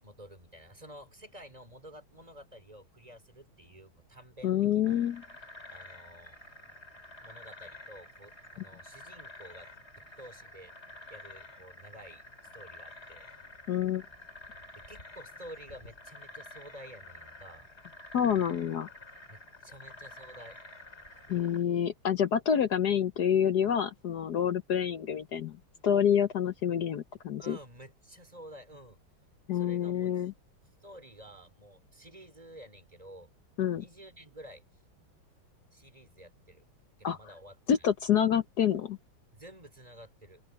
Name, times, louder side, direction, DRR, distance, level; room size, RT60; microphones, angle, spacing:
voice 1, 0.0-5.1 5.7-6.4 7.2-9.7 10.0-10.7 11.1-12.3 12.5-13.3 14.8-17.7 19.3-20.6 27.4-29.0 29.5-30.3 30.8-33.3 33.8-34.6 35.7-36.6 37.0-37.6 39.3-40.4, equal, 15° right, 4.3 m, -51 dB
voice 2, 4.4-5.2 13.7-14.0 18.1-18.9 21.3-25.6 25.8-27.6 29.5-30.3 33.6-33.8 37.0-37.2 37.7-39.0, left 9 dB, 60° left, 1.3 m, -27 dB
sound 1, 4.8-21.6, left 2 dB, 30° left, 6.3 m, -50 dB
open air
omnidirectional pair, 2.2 m